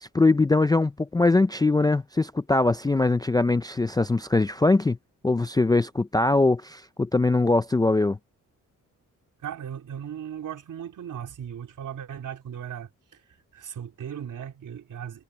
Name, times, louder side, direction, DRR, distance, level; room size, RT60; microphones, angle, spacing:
voice 1, 0.0-5.0 5.2-8.2, left 2 dB, 15° left, 0.3 m, -22 dB
voice 2, 9.4-13.2 13.5-15.2, right 9 dB, 70° right, 3.7 m, -37 dB
wide cardioid pair, 155°, 32 cm